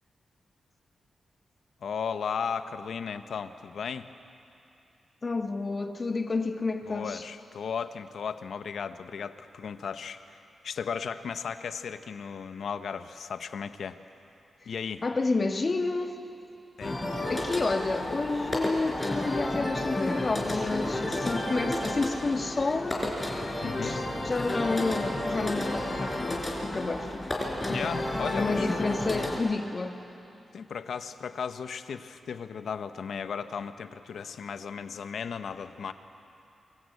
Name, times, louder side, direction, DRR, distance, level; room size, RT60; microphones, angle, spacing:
voice 1, 1.8-4.1 6.9-14.0 14.7-15.0 16.8-17.0 23.6-24.0 27.6-28.7 30.5-35.9, left 6 dB, 75° left, 11 dB, 0.8 m, -35 dB
voice 2, 5.2-7.2 15.0-16.2 17.3-23.0 23.8-27.2 28.3-30.0, left 3 dB, 40° left, 6 dB, 1.4 m, -30 dB
sound 1, 16.8-29.4, left 1 dB, 25° left, 4.3 m, -31 dB
24.5 x 14.0 x 8.3 m, 2.8 s
cardioid pair, 80°, 0 cm